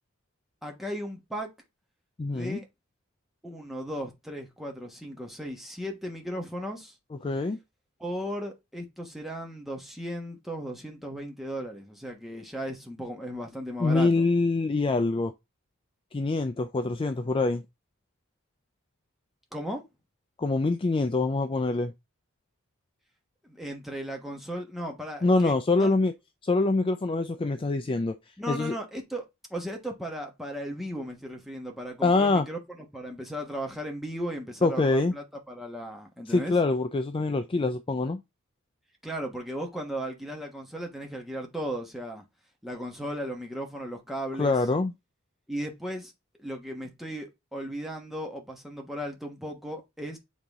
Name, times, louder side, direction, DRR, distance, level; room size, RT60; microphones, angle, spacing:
voice 1, 0.6-1.5 2.2-2.7 3.4-6.9 8.0-14.3 19.5-19.8 23.4-25.5 25.8-25.9 28.4-29.2 29.5-36.6 39.0-42.2 42.6-44.5 45.5-46.1 46.4-50.2, equal, ahead, 1.2 m, -36 dB
voice 2, 2.2-2.6 7.2-7.6 13.8-15.3 16.1-17.6 20.4-21.9 25.2-26.1 26.4-28.2 28.5-28.7 32.0-32.5 34.6-35.1 36.3-38.2 44.4-44.9, left 3 dB, 25° left, 0.4 m, -25 dB
7.3 x 3.9 x 3.6 m
head